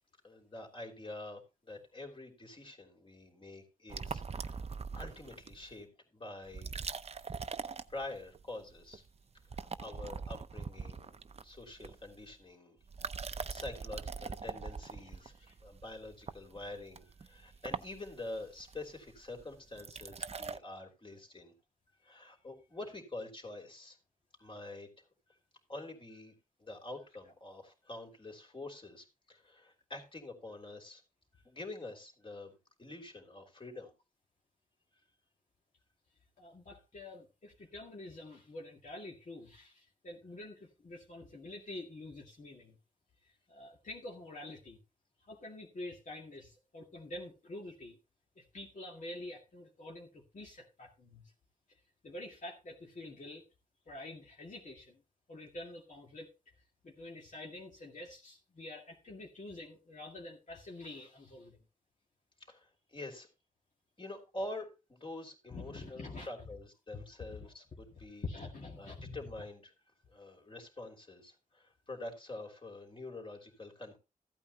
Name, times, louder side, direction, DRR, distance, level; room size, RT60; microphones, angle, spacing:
voice 1, 0.2-4.6 4.9-6.8 7.9-9.0 9.5-11.1 11.4-13.1 13.5-15.3 15.6-21.5 22.0-24.0 24.4-24.9 25.7-31.0 31.4-33.9 62.5-63.3 64.0-68.3 68.8-69.7 70.1-74.0, left 2 dB, 35° left, 1 dB, 3.4 m, -46 dB
sound 1, 3.9-5.7 6.5-8.4 8.7-9.1 9.4-12.3 12.8-20.6, right 5 dB, 45° right, 0.6 m, -42 dB
voice 2, 15.2-15.5 36.4-42.8 43.5-44.8 45.3-48.0 48.4-51.2 52.0-53.4 53.9-55.0 55.3-56.3 56.8-61.6 65.5-66.3 68.2-69.2, left 2 dB, 60° left, -2 dB, 2.1 m, -47 dB
15.0 x 8.8 x 2.8 m, 0.28 s
cardioid pair, 70°, 14 cm